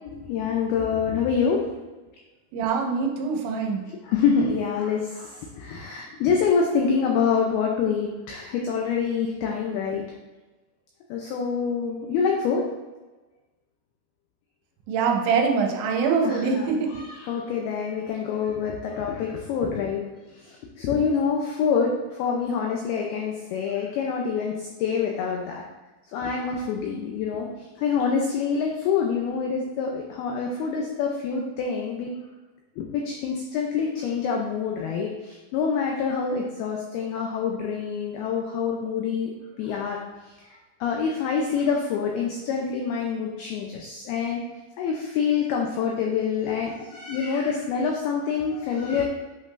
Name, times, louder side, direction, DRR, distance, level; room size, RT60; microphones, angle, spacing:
voice 1, 0.1-1.9 4.0-10.0 11.1-12.7 16.2-20.0 20.3-25.6 26.1-32.1 32.8-39.3 39.6-40.0 40.5-44.4 44.8-49.0, left 6 dB, 90° left, 0 dB, 2.2 m, -26 dB
voice 2, 2.5-3.8 14.9-17.0, right 5 dB, 90° right, 2 dB, 3.0 m, -24 dB
8.5 x 5.4 x 2.5 m, 1.2 s
omnidirectional pair, 5.3 m